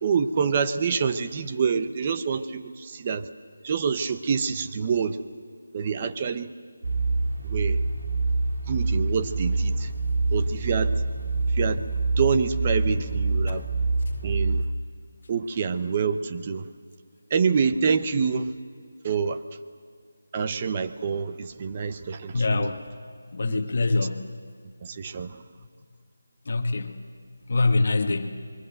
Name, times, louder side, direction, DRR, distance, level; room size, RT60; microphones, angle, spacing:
voice 1, 0.0-3.3 3.6-5.2 5.7-6.5 7.4-7.8 8.7-9.9 10.3-10.9 11.5-11.9 12.2-13.6 14.2-14.7 15.3-16.7 17.3-18.5 19.0-19.4 20.3-22.7 23.4-23.9 24.8-25.4, right 6 dB, 20° right, 10 dB, 0.8 m, -26 dB
sound 1, 6.8-14.6, right 3 dB, 70° right, 2.8 m, -26 dB
voice 2, 22.3-22.8 23.3-24.4 26.4-27.0 27.5-28.3, left 3 dB, 40° left, 6 dB, 1.4 m, -24 dB
27.0 x 21.5 x 8.0 m, 2.1 s
figure-of-eight pair, 175°, 0 cm